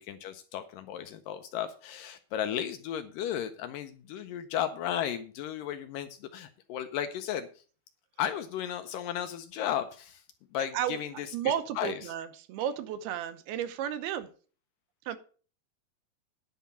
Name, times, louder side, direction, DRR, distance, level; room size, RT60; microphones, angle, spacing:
voice 1, 0.0-7.5 8.2-10.2 10.5-11.9, left 10 dB, 80° left, 9 dB, 2.1 m, -34 dB
voice 2, 11.3-14.3 15.1-15.2, right 10 dB, 85° right, 11 dB, 2.8 m, -33 dB
10.5 x 5.7 x 6.9 m, 0.40 s
omnidirectional pair, 4.4 m